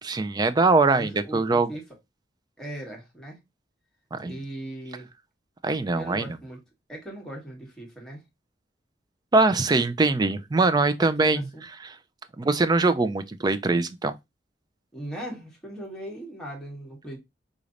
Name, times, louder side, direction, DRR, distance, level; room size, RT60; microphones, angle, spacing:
voice 1, 0.0-1.7 4.1-4.4 5.6-6.3 9.3-11.5 11.8-11.9 12.4-14.1, right 3 dB, 25° right, 0.4 m, -22 dB
voice 2, 0.8-1.8 2.6-3.4 4.2-5.1 5.9-6.6 6.9-8.2 11.0-11.6 14.9-17.2, right 1 dB, 5° left, 1.5 m, -38 dB
3.8 x 3.2 x 2.4 m
head